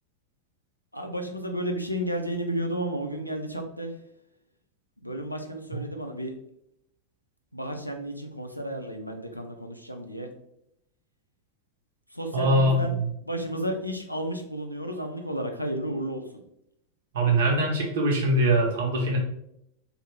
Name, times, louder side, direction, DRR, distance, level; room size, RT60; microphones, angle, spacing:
voice 1, 0.9-4.0 5.0-6.4 7.5-10.3 12.1-13.0 13.2-16.4, right 1 dB, 90° left, 4 dB, 0.3 m, -32 dB
voice 2, 12.3-13.1 17.1-19.2, right 1 dB, 60° right, 0 dB, 0.7 m, -23 dB
2.4 x 2.0 x 3.2 m, 0.79 s
figure-of-eight pair, 90°, 0 cm